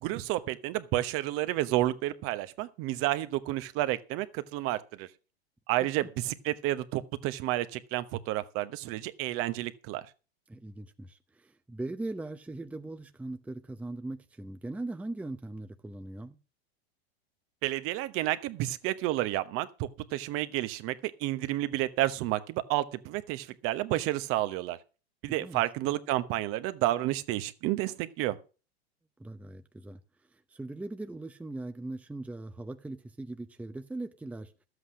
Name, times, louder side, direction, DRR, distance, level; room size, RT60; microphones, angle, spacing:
voice 1, 0.0-5.1 5.7-10.0 17.6-24.8 25.2-28.4, right 15 dB, 45° right, 1.1 m, -30 dB
voice 2, 10.5-16.4 25.3-25.6 29.2-30.0 30.3-34.5, right 2 dB, 5° right, 0.8 m, -40 dB
12.5 x 8.1 x 6.3 m
hypercardioid pair, 105°, 31 cm